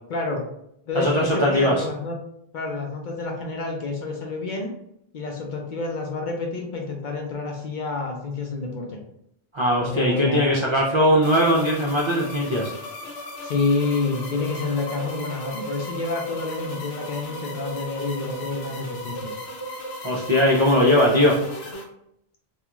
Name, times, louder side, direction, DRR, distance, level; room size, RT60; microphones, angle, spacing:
voice 1, 0.1-0.4 0.9-2.2 2.5-4.7 5.1-9.0 9.8-10.4 13.4-19.3, left 3 dB, 60° left, 1 dB, 0.6 m, -28 dB
voice 2, 0.9-1.8 9.5-12.7 20.0-21.4, equal, 50° right, -5 dB, 0.3 m, -20 dB
sound 1, 11.2-21.8, left 1 dB, 85° left, 0.8 m, -36 dB
2.4 x 2.3 x 2.9 m, 0.75 s
omnidirectional pair, 1.0 m